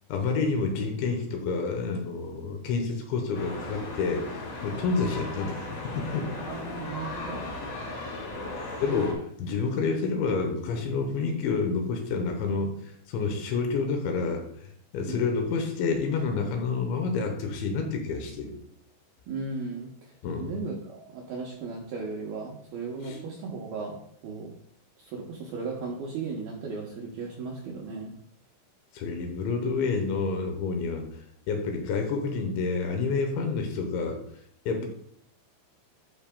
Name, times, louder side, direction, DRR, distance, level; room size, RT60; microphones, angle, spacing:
voice 1, 0.1-5.6 5.9-6.3 8.8-14.4 14.9-18.5 20.2-20.5 23.0-23.2 28.9-31.1 31.5-34.2 34.7-34.9, left 4 dB, 75° left, 4 dB, 3.1 m, -29 dB
sound 1, 3.3-9.1, left 2 dB, 55° left, 4.0 m, -37 dB
voice 2, 6.3-7.5 15.0-15.3 19.3-24.5 25.0-28.1 34.8-34.9, right 4 dB, 80° right, -2 dB, 2.2 m, -36 dB
13.5 x 5.8 x 2.3 m, 0.67 s
omnidirectional pair, 5.6 m